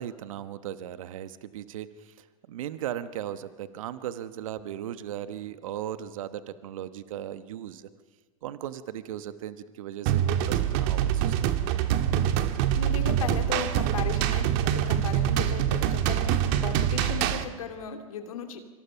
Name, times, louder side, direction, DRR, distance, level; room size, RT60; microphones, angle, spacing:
voice 1, 0.0-7.9 8.4-11.3, right 11 dB, 65° right, 12 dB, 1.2 m, -37 dB
sound 1, 10.1-17.4, right 10 dB, 50° right, 1.7 m, -25 dB
voice 2, 12.7-18.6, left 6 dB, 75° left, 6 dB, 2.8 m, -36 dB
25.5 x 25.5 x 5.8 m, 1.4 s
hypercardioid pair, 100°, 18 cm